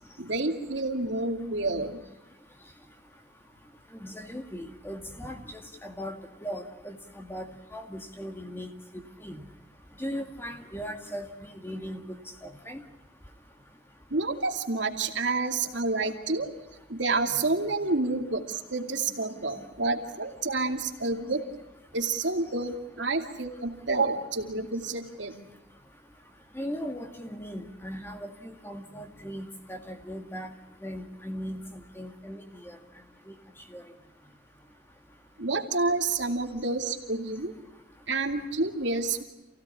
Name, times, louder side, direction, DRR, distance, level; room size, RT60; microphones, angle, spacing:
voice 1, 0.2-2.0 14.1-16.5 16.9-21.4 21.9-25.4 35.4-37.5 38.1-39.2, right 3 dB, 80° right, 4 dB, 2.5 m, -29 dB
voice 2, 4.0-5.4 5.8-6.2 6.4-7.5 7.7-8.7 9.2-9.4 10.0-11.3 11.6-12.0 12.7-12.8 26.6-30.5 30.8-31.6 32.0-32.4 33.7-33.8, equal, 10° left, 5 dB, 2.1 m, -38 dB
28.5 x 16.5 x 9.9 m, 0.95 s
head